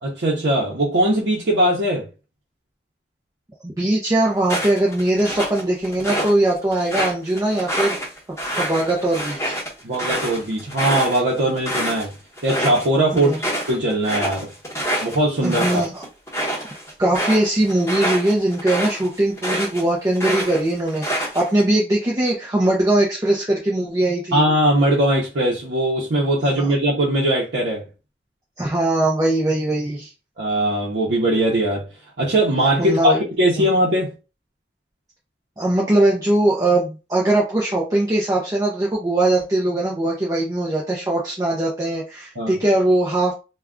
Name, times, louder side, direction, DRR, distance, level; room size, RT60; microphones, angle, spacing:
voice 1, 0.0-2.1 9.8-12.1 12.4-13.3 13.7-14.5 15.0-15.9 24.3-27.8 30.4-31.8 32.2-34.1 42.4-42.5, right 1 dB, 75° right, 0.7 m, -20 dB
voice 2, 3.6-8.0 8.6-9.6 13.1-13.4 15.4-16.0 17.0-24.4 26.5-26.7 28.6-30.1 32.8-33.2 33.6-33.7 35.6-43.3, right 1 dB, 20° right, 0.4 m, -20 dB
sound 1, 4.4-6.3 6.7-12.0 12.4-12.9 13.2-19.8 20.1-21.6, equal, 15° left, 1.0 m, -26 dB
2.3 x 2.1 x 3.6 m
head